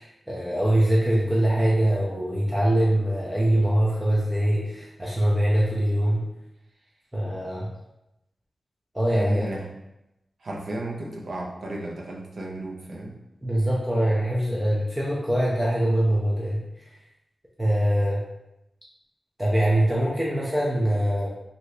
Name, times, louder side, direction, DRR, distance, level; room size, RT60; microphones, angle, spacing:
voice 1, 0.0-6.3 7.1-7.7 8.9-9.5 13.4-16.9 17.6-18.2 19.4-21.3, right 1 dB, 10° right, -5 dB, 0.4 m, -23 dB
voice 2, 9.1-9.7 10.4-13.2, right 1 dB, 60° right, -1 dB, 0.5 m, -34 dB
2.7 x 2.7 x 3.2 m, 0.90 s
wide cardioid pair, 155°, 0 cm